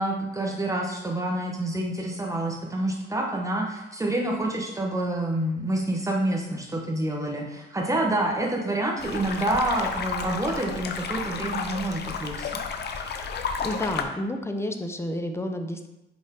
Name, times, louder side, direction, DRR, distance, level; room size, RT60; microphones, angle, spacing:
voice 1, 0.0-12.5, right 1 dB, 15° right, 0 dB, 1.1 m, -27 dB
sound 1, 9.0-14.0, left 5 dB, 55° left, 0.7 m, -32 dB
voice 2, 13.6-15.9, left 1 dB, 15° left, 5 dB, 0.7 m, -30 dB
5.2 x 5.0 x 3.8 m, 0.94 s
cardioid pair, 90°, 20 cm